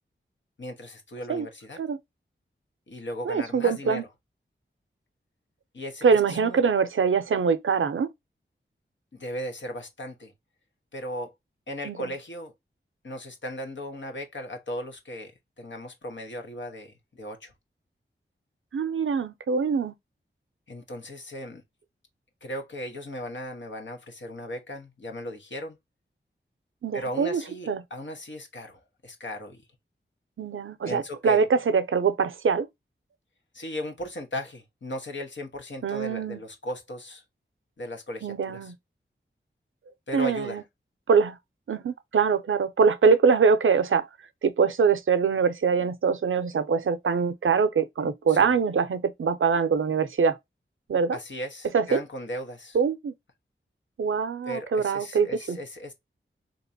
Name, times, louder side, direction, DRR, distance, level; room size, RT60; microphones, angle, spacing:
voice 1, 0.6-1.8 2.9-4.1 5.7-6.6 9.1-10.3 10.9-11.3 11.7-12.5 13.0-15.3 15.6-17.5 20.7-21.6 22.4-25.8 26.9-29.6 30.8-31.5 33.5-37.2 37.8-38.7 40.1-40.6 48.3-48.6 51.1-52.8 54.5-55.9, equal, 65° left, 1.1 m, -37 dB
voice 2, 3.3-4.0 6.0-8.1 11.9-12.0 18.7-19.9 26.8-27.4 27.7-27.8 30.4-32.7 35.8-36.4 38.2-38.7 40.1-40.6 41.1-41.4 41.7-44.1 44.4-50.4 50.9-51.2 51.7-52.0 52.7-53.1 54.0-55.6, right 5 dB, 80° right, 0.5 m, -23 dB
3.7 x 2.9 x 2.7 m
wide cardioid pair, 80°, 20 cm